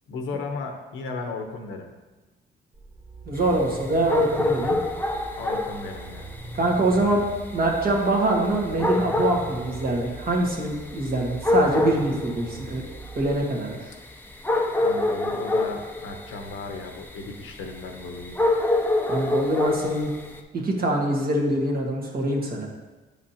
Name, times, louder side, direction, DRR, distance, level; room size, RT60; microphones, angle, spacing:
voice 1, 0.1-1.9 5.4-6.3 14.8-18.4, left 3 dB, 75° left, 4 dB, 0.9 m, -35 dB
sound 1, 2.7-13.4, right 2 dB, 30° right, 1.0 m, -41 dB
voice 2, 3.2-4.8 6.5-7.2 7.5-12.8 13.1-13.8 19.1-20.1 20.5-22.7, right 2 dB, 50° right, -2 dB, 1.6 m, -24 dB
sound 2, 3.3-20.4, left 2 dB, 10° left, 0.6 m, -28 dB
9.6 x 5.0 x 2.9 m, 1.2 s
cardioid pair, 90°, 20 cm